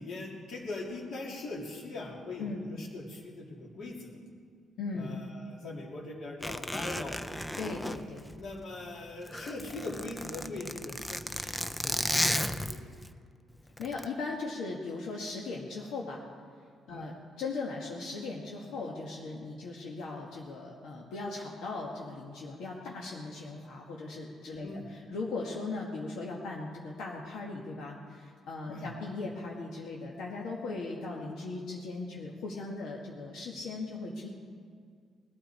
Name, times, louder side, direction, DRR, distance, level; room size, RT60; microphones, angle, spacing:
voice 1, 0.0-4.2 4.9-7.2 8.4-13.0 16.9-17.1 24.6-24.9 28.7-28.9, left 2 dB, 50° left, -1 dB, 2.7 m, -41 dB
voice 2, 4.8-5.2 7.6-8.3 13.8-16.2 16.9-34.3, left 3 dB, 75° left, -2 dB, 1.7 m, -38 dB
Zipper (clothing), 6.4-8.8 9.1-13.1 13.8-14.1, left 1 dB, 5° left, 0.4 m, -34 dB
20.5 x 12.5 x 4.4 m, 2.1 s
cardioid pair, 175°, 0 cm